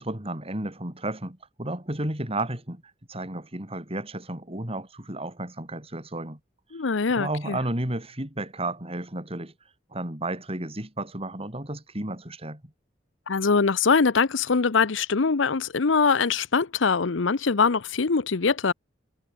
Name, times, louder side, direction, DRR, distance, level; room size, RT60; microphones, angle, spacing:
voice 1, 0.0-2.8 3.1-6.4 7.1-9.5 9.9-12.6, right 1 dB, 30° right, 4.4 m, -32 dB
voice 2, 6.7-7.6 13.3-18.7, left 5 dB, 90° left, 0.8 m, -23 dB
head